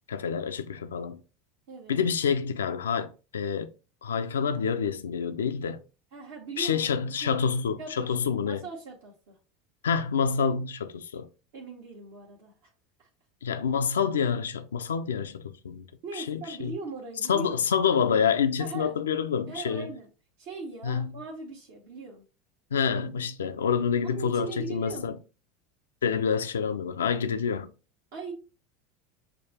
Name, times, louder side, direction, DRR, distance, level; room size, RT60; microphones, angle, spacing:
voice 1, 0.1-1.2 1.9-3.7 4.0-5.8 6.6-8.6 9.8-11.3 13.4-15.8 16.1-16.7 17.3-19.9 20.8-21.1 22.7-25.2 26.0-27.7, left 6 dB, 85° left, 0.4 m, -27 dB
voice 2, 1.7-2.0 6.1-7.5 7.8-9.4 11.5-12.5 13.0-13.1 16.0-17.5 18.6-18.9 19.5-20.1 20.4-22.2 24.0-25.1 28.1-28.3, right 4 dB, 70° right, 1.2 m, -40 dB
6.7 x 2.3 x 2.8 m
hypercardioid pair, 85°, 0 cm